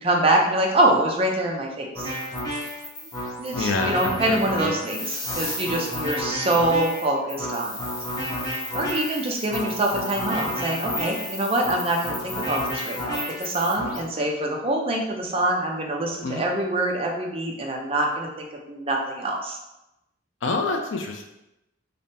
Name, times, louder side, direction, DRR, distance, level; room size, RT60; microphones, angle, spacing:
voice 1, 0.0-2.1 3.4-7.9 8.7-19.6, right 1 dB, 30° right, 0 dB, 0.5 m, -25 dB
sound 1, 2.0-14.0, left 1 dB, 20° left, 0.9 m, -31 dB
voice 2, 3.5-4.7 16.2-16.4 20.4-21.2, left 3 dB, 70° left, 3 dB, 0.5 m, -27 dB
3.4 x 2.1 x 4.1 m, 0.90 s
head